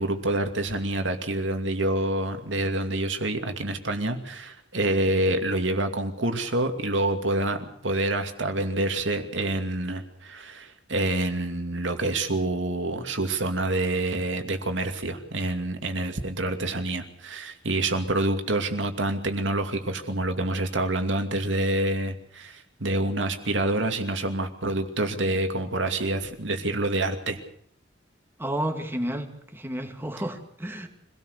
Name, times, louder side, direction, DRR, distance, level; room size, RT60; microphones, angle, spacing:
voice 1, 0.0-27.4, right 2 dB, 80° right, 6 dB, 2.6 m, -27 dB
voice 2, 28.4-30.9, right 1 dB, 10° right, 4 dB, 2.4 m, -31 dB
25.5 x 17.5 x 6.7 m, 0.62 s
head